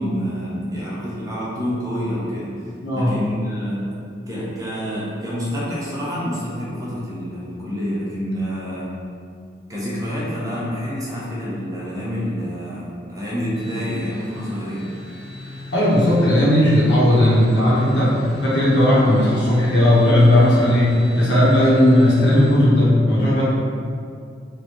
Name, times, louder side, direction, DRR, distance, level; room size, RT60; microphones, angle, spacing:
voice 1, 0.0-2.5 2.9-3.9 4.3-8.9 9.7-14.9, equal, 20° right, -7 dB, 0.8 m, -27 dB
voice 2, 2.8-3.1 15.7-18.1 18.4-23.4, left 1 dB, 80° left, -8 dB, 1.2 m, -16 dB
sound 1, 13.5-22.5, left 1 dB, 55° left, 0.8 m, -38 dB
4.7 x 2.5 x 3.1 m, 2.3 s
head